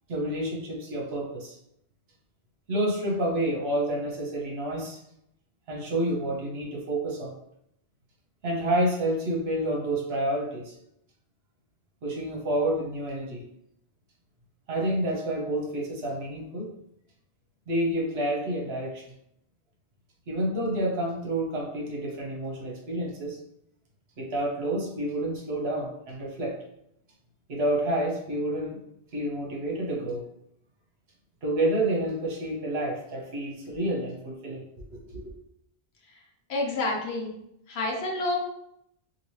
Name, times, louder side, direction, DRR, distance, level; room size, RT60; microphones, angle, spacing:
voice 1, 0.1-1.6 2.7-5.0 5.7-7.4 8.4-10.7 12.0-13.5 14.7-16.7 17.7-19.0 20.3-23.4 24.2-26.6 27.5-28.8 29.1-30.3 31.4-35.2, right 1 dB, 65° right, -1 dB, 1.0 m, -29 dB
voice 2, 36.5-37.3 37.7-38.4, left 2 dB, 65° left, 0 dB, 0.9 m, -28 dB
2.9 x 2.7 x 3.0 m, 0.76 s
omnidirectional pair, 1.2 m